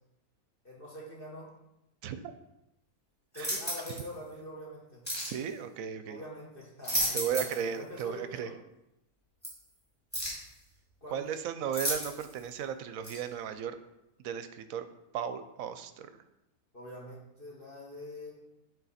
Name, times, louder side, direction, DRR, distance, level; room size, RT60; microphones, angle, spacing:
voice 1, 0.6-1.5 3.3-5.0 6.0-8.5 11.0-11.4 16.7-18.3, left 1 dB, 40° left, -5 dB, 1.5 m, -45 dB
sound 1, 3.3-4.1 5.0-5.4 6.6-7.7 8.0-8.1 9.4-9.5 10.1-10.5 11.7-12.4 13.0-13.2, equal, 5° left, 2.4 m, -33 dB
voice 2, 5.2-6.2 7.1-8.5 11.1-13.8 14.2-14.9 15.1-16.2, right 8 dB, 70° right, 10 dB, 0.9 m, -35 dB
9.0 x 4.3 x 4.2 m, 0.89 s
omnidirectional pair, 1.6 m